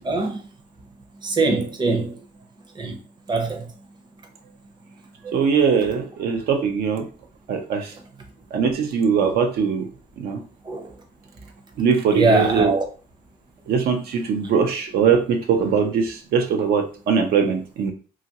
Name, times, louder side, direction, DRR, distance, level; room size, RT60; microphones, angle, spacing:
voice 1, 0.0-0.4 1.2-2.1 2.8-3.0 3.3-3.6 5.2-5.4 10.7-10.9 12.1-12.8, right 3 dB, 30° right, 0.6 m, -22 dB
voice 2, 5.3-7.1 7.5-7.9 8.5-9.9 10.2-10.4 11.8-12.8 13.7-17.9, right 6 dB, 80° right, 0.5 m, -21 dB
2.9 x 2.5 x 2.7 m
cardioid pair, 140°, 16 cm